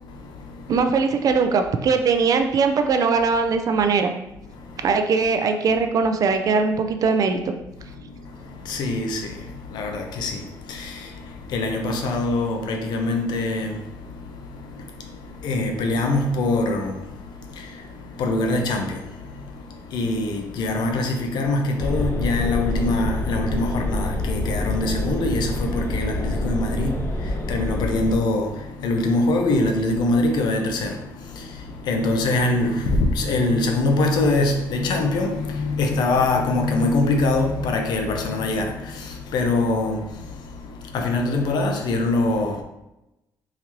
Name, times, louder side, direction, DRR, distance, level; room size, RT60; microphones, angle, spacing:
voice 1, 0.0-0.8 4.5-4.9 7.8-42.6, left 2 dB, 75° left, 0.6 m, -24 dB
voice 2, 0.7-4.1 4.8-7.5, right 5 dB, 55° right, 0.4 m, -20 dB
sound 1, 21.8-28.2, left 1 dB, 35° left, 0.8 m, -26 dB
3.8 x 2.7 x 3.0 m
cardioid pair, 90°, 7 cm